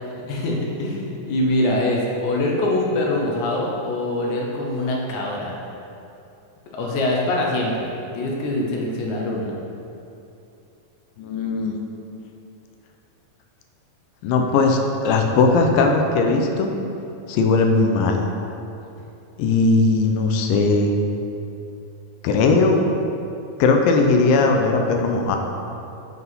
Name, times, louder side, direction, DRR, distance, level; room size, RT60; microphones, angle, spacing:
voice 1, 0.3-5.6 6.7-9.5, left 1 dB, 70° left, -2 dB, 2.0 m, -24 dB
voice 2, 11.2-11.8 14.2-16.7 17.3-18.2 19.4-20.9 22.2-22.8 23.6-25.4, left 3 dB, 90° left, 3 dB, 2.4 m, -18 dB
7.9 x 4.0 x 5.4 m, 2.8 s
omnidirectional pair, 4.0 m